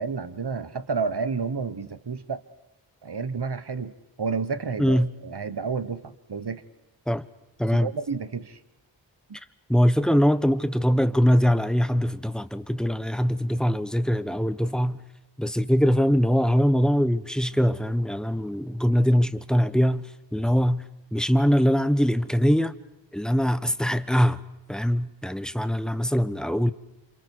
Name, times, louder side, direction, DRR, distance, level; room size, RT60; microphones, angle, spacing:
voice 1, 0.0-2.4 3.0-6.6 7.7-8.6, right 5 dB, 60° right, 1.2 m, -30 dB
voice 2, 4.8-5.1 7.1-7.3 7.6-7.9 9.7-15.0 15.4-20.8 21.1-22.7 23.1-24.4 24.7-26.7, equal, ahead, 1.1 m, -22 dB
29.5 x 27.5 x 4.8 m
wide cardioid pair, 45°, 45 cm